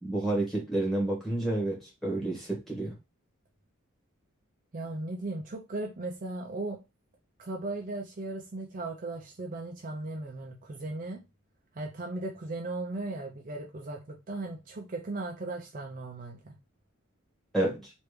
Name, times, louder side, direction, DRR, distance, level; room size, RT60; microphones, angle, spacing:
voice 1, 0.0-2.9 17.5-17.9, right 2 dB, ahead, 1.3 m, -30 dB
voice 2, 4.7-6.8 7.4-11.2 11.7-16.6, right 2 dB, 40° right, 0.5 m, -37 dB
3.3 x 2.6 x 3.1 m
head